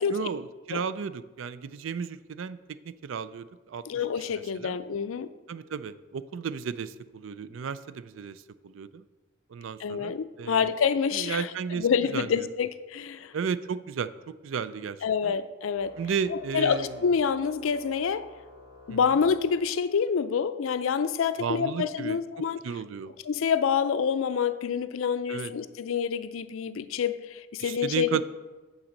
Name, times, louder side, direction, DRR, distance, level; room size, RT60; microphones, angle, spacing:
voice 1, 0.1-2.6 3.0-3.8 4.3-4.8 5.5-9.0 9.5-10.7 11.1-11.8 12.1-12.3 13.3-14.1 14.4-15.0 15.2-15.3 16.0-16.9 18.9-19.0 21.4-22.2 22.6-23.1 25.3-25.5 27.6-28.2, right 6 dB, 75° right, 0.4 m, -33 dB
voice 2, 3.9-5.3 9.8-13.3 15.0-15.9 16.3-18.3 18.9-22.6 23.2-28.2, left 6 dB, 85° left, 0.4 m, -27 dB
Organ, 15.7-20.2, left 2 dB, 15° left, 2.4 m, -52 dB
8.7 x 4.0 x 6.4 m
head